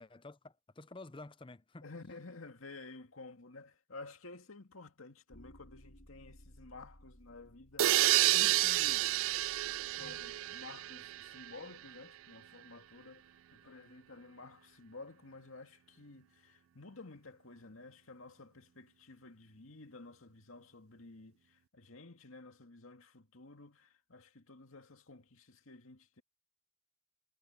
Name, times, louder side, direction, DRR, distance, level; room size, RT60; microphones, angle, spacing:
voice 1, 0.0-1.8 10.0-10.2, left 2 dB, 25° left, 0.6 m, -51 dB
voice 2, 1.8-7.9 8.2-9.1 9.6-26.2, left 3 dB, 85° left, 2.2 m, -52 dB
sound 1, 5.3-10.4, equal, 70° left, 6.9 m, -60 dB
sound 2, 7.8-11.5, right 15 dB, 80° right, 0.4 m, -30 dB
head